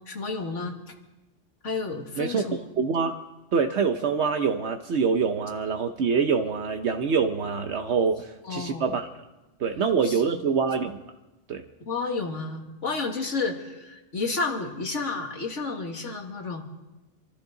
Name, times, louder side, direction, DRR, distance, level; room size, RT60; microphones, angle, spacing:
voice 1, 0.1-0.7 1.6-2.7 8.5-8.9 10.0-10.5 11.9-16.7, left 3 dB, 80° left, 3 dB, 2.2 m, -31 dB
voice 2, 2.2-3.2 3.5-9.1 9.6-11.0 11.5-11.7, right 5 dB, 70° right, 5 dB, 1.1 m, -25 dB
27.0 x 13.5 x 3.9 m, 1.1 s
omnidirectional pair, 1.2 m